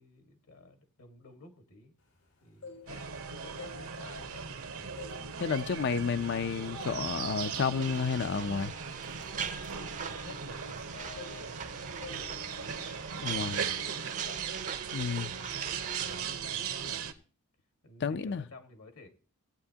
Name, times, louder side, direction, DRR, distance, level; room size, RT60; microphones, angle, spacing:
voice 1, 0.0-1.9 2.4-5.0 10.0-12.8 13.1-14.5 15.2-17.1 17.8-19.1, left 2 dB, 70° left, 1.8 m, -53 dB
sound 1, 2.4-3.2 3.5-4.6 5.0-5.3 5.7-5.9 6.5-6.7 7.0-10.9 11.2-11.7 12.0-12.3 12.6-12.8, left 4 dB, 85° left, 5.1 m, -50 dB
sound 2, 2.9-17.1, right 6 dB, 70° right, 1.0 m, -38 dB
voice 2, 5.4-8.7 13.2-13.6 14.9-15.3 18.0-18.4, left 5 dB, 55° left, 0.5 m, -31 dB
sound 3, 7.8-16.3, right 7 dB, 35° right, 0.6 m, -42 dB
18.0 x 8.7 x 2.9 m
head